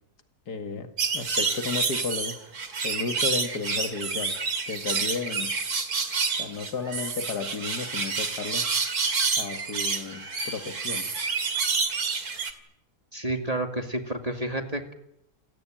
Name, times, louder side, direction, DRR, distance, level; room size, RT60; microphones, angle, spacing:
voice 1, 0.5-0.9 1.1-2.3 2.8-4.3 4.7-5.5 6.4-8.6 9.4-11.1, left 5 dB, 90° left, 7 dB, 2.7 m, -33 dB
sound 1, 1.0-12.5, right 4 dB, 70° right, 2.9 m, -28 dB
voice 2, 13.1-14.9, right 1 dB, 25° right, 6 dB, 2.4 m, -30 dB
28.5 x 18.0 x 9.0 m, 0.79 s
omnidirectional pair, 1.7 m